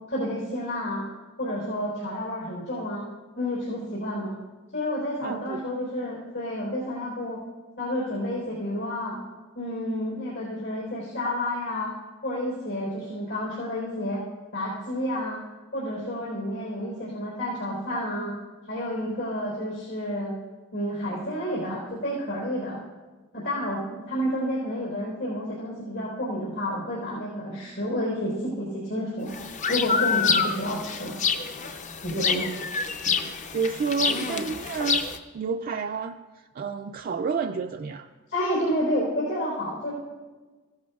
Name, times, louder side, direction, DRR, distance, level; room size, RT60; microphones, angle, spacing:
voice 1, 0.1-1.1 1.4-3.0 3.4-4.3 4.7-7.4 7.8-9.1 9.5-11.9 12.2-14.3 14.5-15.4 15.7-18.3 18.7-20.3 20.7-22.8 23.3-29.3 29.7-31.2 32.0-32.5 38.3-39.9, equal, 85° left, -7 dB, 3.8 m, -30 dB
voice 2, 5.2-5.7 32.1-32.5 33.1-38.1, right 5 dB, 45° right, 5 dB, 0.3 m, -31 dB
sound 1, 29.3-35.2, left 5 dB, 35° left, 0.5 m, -27 dB
15.5 x 11.5 x 2.3 m, 1.3 s
head